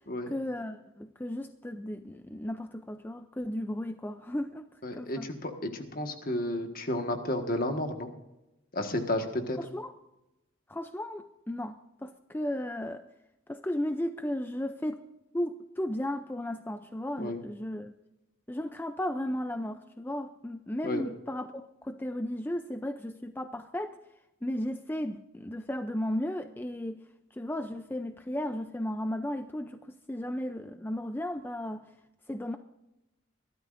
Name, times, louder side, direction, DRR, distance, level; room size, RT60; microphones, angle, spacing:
voice 1, 0.3-4.7 4.9-5.3 9.6-9.9 10.7-13.0 13.5-15.0 15.3-17.9 18.5-24.0 24.4-27.0 27.3-31.8 32.3-32.6, left 1 dB, 10° left, 8 dB, 0.4 m, -35 dB
voice 2, 4.8-8.1 8.7-9.6 17.2-17.4 20.8-21.0, left 1 dB, 45° left, 5 dB, 1.6 m, -32 dB
24.0 x 12.5 x 2.6 m, 0.95 s
head